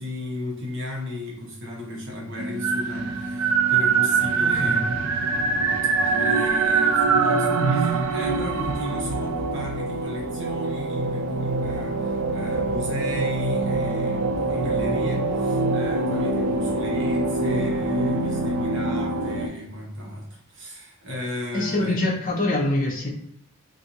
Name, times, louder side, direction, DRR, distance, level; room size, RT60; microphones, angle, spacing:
voice 1, 0.0-5.0 6.0-22.0, left 1 dB, 60° right, 1.0 m, -35 dB
sound 1, 2.4-19.5, right 3 dB, 90° right, 0.4 m, -24 dB
voice 2, 4.4-4.9 21.5-23.1, left 1 dB, 40° left, 0.7 m, -25 dB
2.6 x 2.5 x 2.8 m
head